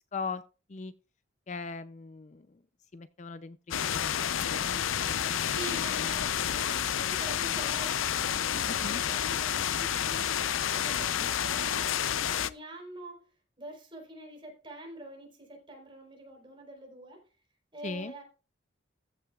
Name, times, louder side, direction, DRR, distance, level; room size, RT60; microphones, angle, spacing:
voice 1, 0.1-0.4 0.7-0.9 1.5-2.6 2.9-4.2 4.5-5.6 8.6-9.0 11.2-11.3 17.8-18.1, left 4 dB, 35° left, 0.5 m, -40 dB
sound 1, 3.7-12.5, left 9 dB, 85° left, 0.5 m, -30 dB
voice 2, 5.5-13.3 13.6-17.2 17.7-18.2, right 2 dB, 25° right, 4.0 m, -45 dB
14.5 x 8.8 x 2.4 m
head